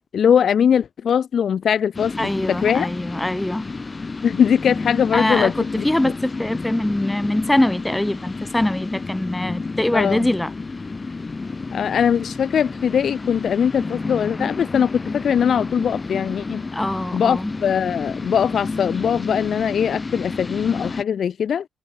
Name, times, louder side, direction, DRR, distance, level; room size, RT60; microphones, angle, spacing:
voice 1, 0.1-2.9 4.2-5.8 9.9-10.3 11.7-16.6 17.1-21.7, left 8 dB, 55° left, 0.6 m, -21 dB
sound 1, 1.9-21.0, left 3 dB, 25° left, 7.2 m, -30 dB
voice 2, 2.2-3.7 5.1-10.5 16.7-17.5, left 1 dB, 10° left, 1.3 m, -23 dB
cardioid pair, 90°, 0 cm